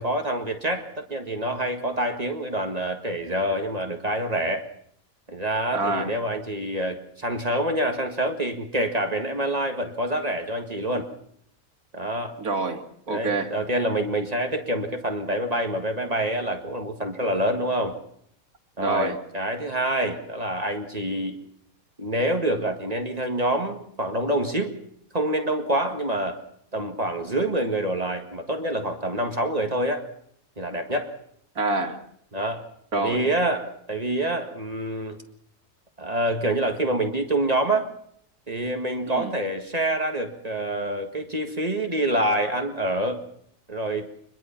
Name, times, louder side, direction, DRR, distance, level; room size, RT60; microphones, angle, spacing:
voice 1, 0.0-4.7 5.3-11.1 11.9-12.4 13.1-18.0 18.8-21.4 22.0-24.7 25.1-26.4 26.7-30.1 30.6-31.2 32.3-35.2 36.0-37.9 38.5-43.2 43.7-44.1, right 1 dB, 25° right, 5 dB, 1.9 m, -26 dB
voice 2, 5.7-6.1 12.4-13.5 18.8-19.2 31.6-32.0 32.9-33.2 39.1-39.3, right 3 dB, 90° right, 3 dB, 2.5 m, -27 dB
24.0 x 21.5 x 5.8 m, 0.67 s
omnidirectional pair, 1.5 m